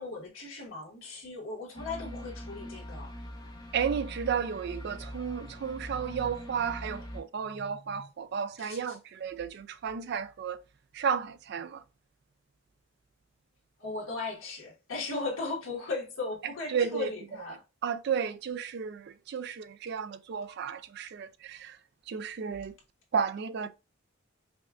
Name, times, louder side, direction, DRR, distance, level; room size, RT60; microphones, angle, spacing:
voice 1, 0.0-3.1 8.6-8.8 13.8-17.6, left 3 dB, 80° left, 1.4 m, -37 dB
sound 1, 1.7-7.2, equal, 20° left, 0.8 m, -42 dB
voice 2, 3.7-10.6 10.9-11.8 16.7-17.1 17.8-21.8 22.1-22.7 23.1-23.7, right 7 dB, 55° right, 0.3 m, -33 dB
5.1 x 2.3 x 2.4 m
head